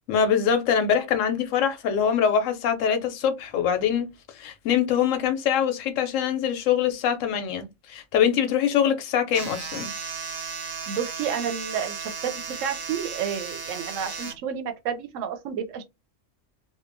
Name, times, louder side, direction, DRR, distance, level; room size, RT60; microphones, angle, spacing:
voice 1, 0.1-4.1 4.3-9.9, left 8 dB, 85° left, 1.0 m, -23 dB
sound 1, 9.3-14.3, right 5 dB, 50° right, 0.7 m, -35 dB
voice 2, 10.9-15.8, right 8 dB, 80° right, 0.9 m, -30 dB
2.8 x 2.1 x 2.5 m
omnidirectional pair, 1.3 m